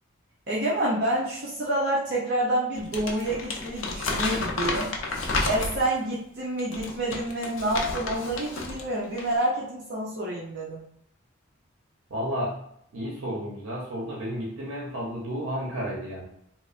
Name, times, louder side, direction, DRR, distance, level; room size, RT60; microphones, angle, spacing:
voice 1, 0.5-4.9 5.4-10.8, right 1 dB, 55° right, -5 dB, 0.6 m, -28 dB
Crumpling crinkling, 2.8-6.0 6.6-8.8 9.1-9.4, left 3 dB, 75° left, 0.5 m, -31 dB
voice 2, 12.1-12.6 12.9-16.3, equal, 85° right, -4 dB, 0.7 m, -32 dB
3.1 x 2.0 x 2.4 m, 0.73 s
head